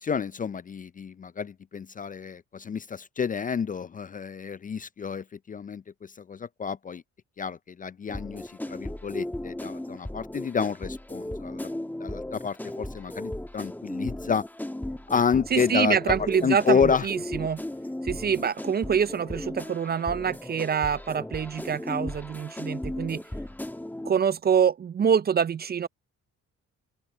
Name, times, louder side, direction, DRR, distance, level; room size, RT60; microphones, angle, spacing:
voice 1, 0.0-7.0 7.4-11.7 12.0-14.4 15.1-16.0 16.4-17.1, left 6 dB, 30° left, 0.4 m, -29 dB
sound 1, 8.1-24.1, left 1 dB, 5° left, 1.5 m, -36 dB
voice 2, 15.5-17.6 18.0-23.2 24.0-25.9, right 7 dB, 35° right, 0.5 m, -25 dB
open air
cardioid pair, 90°, 30 cm